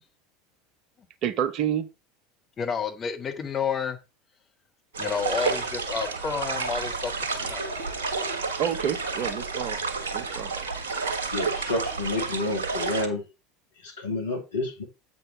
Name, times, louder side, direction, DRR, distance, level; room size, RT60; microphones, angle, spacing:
voice 1, 1.2-1.9 8.6-9.8 10.1-10.6, right 9 dB, 45° right, 0.9 m, -28 dB
voice 2, 2.6-4.0 5.0-8.1, left 6 dB, 30° left, 1.6 m, -31 dB
sound 1, 4.9-13.1, right 4 dB, 70° right, 1.4 m, -30 dB
voice 3, 11.3-13.3 13.8-14.8, left 2 dB, 70° left, 2.4 m, -29 dB
8.0 x 5.5 x 4.7 m
figure-of-eight pair, 75°, 0 cm